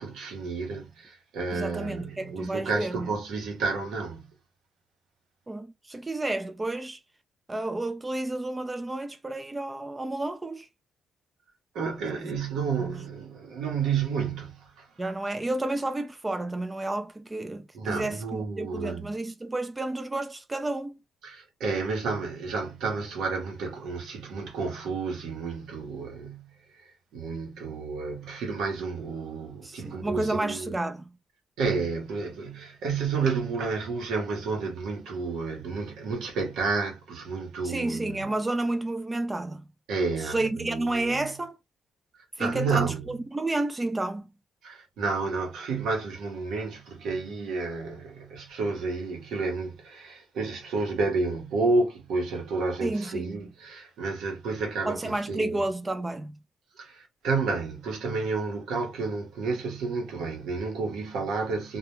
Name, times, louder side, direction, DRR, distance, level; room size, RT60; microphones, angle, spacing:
voice 1, 0.0-4.2 11.7-14.9 17.7-19.1 21.2-26.5 26.8-30.7 31.6-38.3 39.9-41.3 42.4-43.0 44.6-55.6 56.8-61.8, right 4 dB, 80° right, 0.9 m, -31 dB
voice 2, 1.5-3.1 5.5-7.0 7.5-10.7 12.2-12.3 12.8-13.0 15.0-21.0 29.6-31.1 37.6-39.6 40.2-41.6 42.4-44.3 52.8-53.5 54.9-56.4, right 2 dB, 20° right, 0.3 m, -31 dB
2.3 x 2.1 x 2.9 m
cardioid pair, 90°, 0 cm